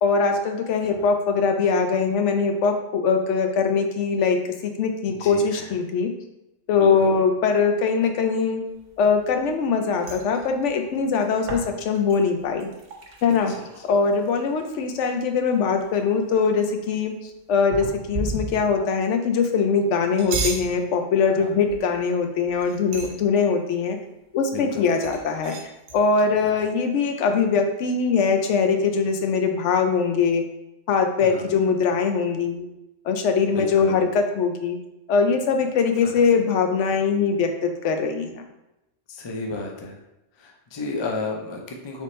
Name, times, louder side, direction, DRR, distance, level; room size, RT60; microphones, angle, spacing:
voice 1, 0.0-6.1 6.7-8.6 9.0-12.7 13.2-13.5 13.8-17.1 17.5-24.0 24.3-30.4 30.9-32.7 33.0-34.8 35.1-38.4, left 5 dB, 75° left, 5 dB, 0.9 m, -22 dB
voice 2, 5.1-5.7 6.7-7.1 13.5-13.6 21.4-21.5 24.5-24.9 26.4-26.6 31.2-31.5 33.5-34.0 36.0-36.1 39.1-40.0 40.4-42.0, left 3 dB, 35° left, 1 dB, 0.4 m, -33 dB
sound 1, 8.8-9.7 10.0-14.9 15.2-15.3 15.5-16.2 17.7-18.8 20.0-20.7 21.7-22.0 22.5-23.3 25.0-26.0, right 4 dB, 55° right, 0.9 m, -34 dB
4.1 x 3.4 x 3.1 m, 0.92 s
omnidirectional pair, 1.2 m